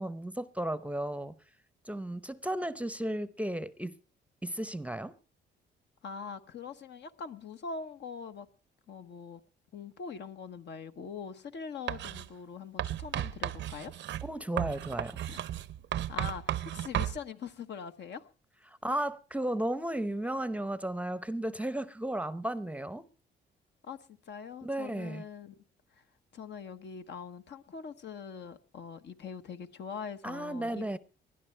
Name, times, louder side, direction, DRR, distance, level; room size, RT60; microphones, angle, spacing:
voice 1, 0.0-1.3 1.8-3.9 4.4-5.1 14.2-15.2 18.7-23.0 24.6-25.2 30.2-31.0, right 1 dB, 5° right, 0.7 m, -34 dB
voice 2, 6.0-8.5 8.9-9.4 9.7-13.9 15.3-15.5 16.1-18.3 23.8-24.0 24.2-25.6 26.3-30.9, left 6 dB, 60° left, 1.2 m, -43 dB
Writing, 11.9-12.3 12.8-17.2, right 12 dB, 65° right, 0.7 m, -34 dB
20.0 x 12.0 x 4.5 m
cardioid pair, 90°, 20 cm